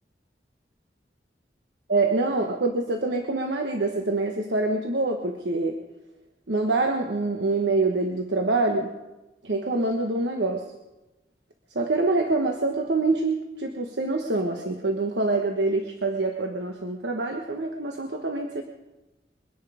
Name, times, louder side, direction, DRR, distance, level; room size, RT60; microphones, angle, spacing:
voice 1, 1.9-5.8 6.5-8.9 9.4-10.6 11.7-18.6, right 2 dB, 85° right, 3 dB, 1.2 m, -25 dB
23.0 x 10.5 x 5.0 m, 1.0 s
head